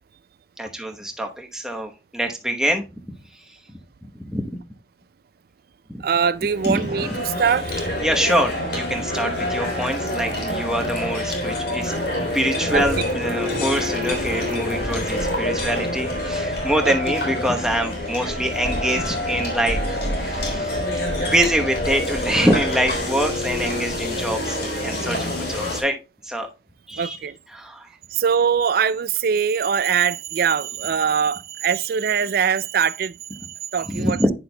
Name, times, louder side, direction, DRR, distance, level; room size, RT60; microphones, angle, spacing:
voice 1, 0.6-3.6 4.0-4.4 6.7-7.1 8.0-11.9 12.3-20.8 21.2-26.0 26.2-26.5 26.9-27.9 33.8-34.3, equal, 5° right, 0.9 m, -25 dB
voice 2, 6.0-7.9 12.7-12.8 16.8-16.9 27.0-27.4 28.1-33.1 33.7-34.2, right 7 dB, 50° right, 0.3 m, -22 dB
sound 1, 6.4-25.8, left 1 dB, 55° left, 3.1 m, -26 dB
9.6 x 6.5 x 2.2 m
head